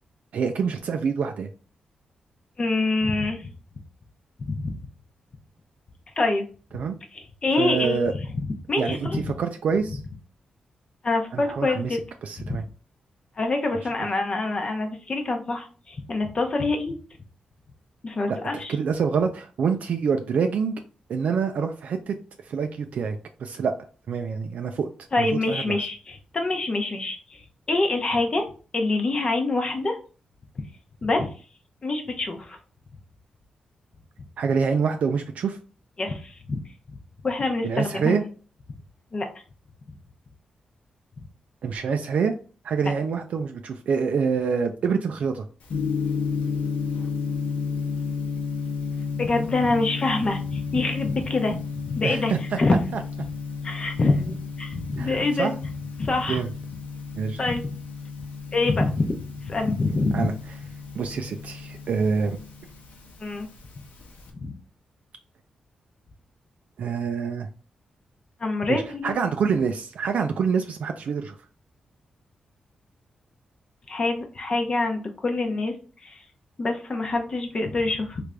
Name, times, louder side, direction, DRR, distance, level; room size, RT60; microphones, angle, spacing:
voice 1, 0.3-1.5 6.7-6.9 7.6-8.1 8.8-9.1 9.4-10.0 11.3-11.9 12.2-12.6 18.3-18.4 18.7-20.8 21.1-22.1 22.5-23.7 24.1-24.9 25.2-25.8 34.4-35.6 37.6-38.2 41.6-42.3 42.6-45.4 52.0-52.4 55.0-55.5 56.3-56.5 57.1-57.4 60.1-60.3 61.0-62.4 66.8-67.5 68.7-71.4, right 6 dB, 70° right, 5 dB, 0.4 m, -26 dB
voice 2, 2.6-3.5 4.5-4.7 6.2-6.5 7.1-8.1 8.4-9.2 11.0-12.0 12.5-12.6 13.4-17.0 18.0-18.8 25.1-27.4 27.7-28.5 28.7-30.0 31.0-31.3 31.8-32.6 36.0-36.6 37.2-38.2 39.1-39.3 49.1-51.6 51.8-52.8 53.6-55.5 56.0-56.4 57.4-57.7 58.5-59.1 59.4-60.3 63.2-63.5 64.3-64.5 68.4-69.1 73.9-75.7 76.0-76.2 76.6-78.2, left 3 dB, 40° left, 4 dB, 0.6 m, -25 dB
Gong, 45.6-64.3, left 5 dB, 80° left, 0.9 m, -32 dB
3.2 x 2.5 x 3.3 m, 0.37 s
cardioid pair, 90°, 3 cm